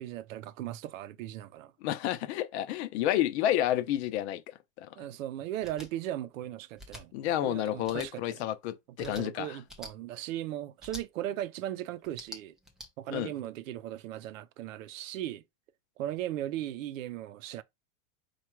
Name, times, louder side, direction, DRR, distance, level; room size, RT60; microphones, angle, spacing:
voice 1, 0.0-1.7 5.0-7.1 7.4-8.4 9.0-12.5 13.0-15.4 16.0-17.6, right 13 dB, 75° right, 0.6 m, -37 dB
voice 2, 1.8-4.4 4.8-4.9 7.1-9.6 13.1-13.3, left 12 dB, 55° left, 0.7 m, -30 dB
sound 1, 5.6-5.9 6.8-7.0 7.8-8.1 9.0-9.2 9.7-9.9 10.8-11.0 12.0-12.9, left 1 dB, ahead, 0.4 m, -45 dB
4.6 x 2.4 x 4.4 m
supercardioid pair, 155°, 40 cm